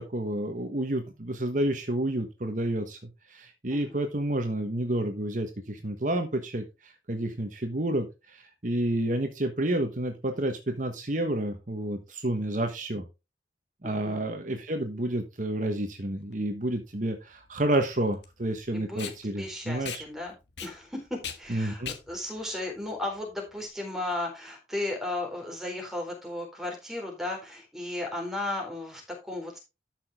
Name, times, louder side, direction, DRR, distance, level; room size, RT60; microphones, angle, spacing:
voice 1, 0.0-3.0 3.3-13.0 13.8-20.1 21.5-21.9, right 1 dB, 45° right, 6 dB, 1.2 m, -30 dB
voice 2, 13.8-14.2 18.7-29.6, left 2 dB, ahead, 1 dB, 4.2 m, -35 dB
Packing tape duct tape, 16.2-23.7, left 7 dB, 90° left, 1.8 m, -42 dB
13.0 x 6.1 x 3.6 m, 0.26 s
head